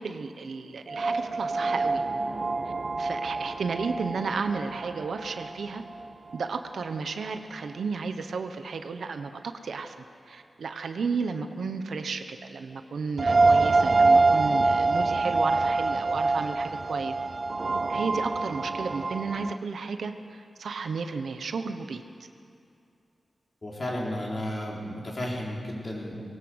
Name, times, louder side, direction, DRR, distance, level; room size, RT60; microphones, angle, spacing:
voice 1, 0.0-2.0 3.0-5.8 6.3-9.9 10.2-17.1 17.9-22.0, right 4 dB, 75° right, 8 dB, 1.1 m, -33 dB
sound 1, 0.9-6.5 6.8-6.9 13.2-19.6, right 3 dB, 35° right, 0.4 m, -25 dB
voice 2, 23.6-26.1, left 1 dB, 30° left, -3 dB, 4.2 m, -33 dB
21.0 x 17.5 x 8.0 m, 2.5 s
wide cardioid pair, 170°, 0 cm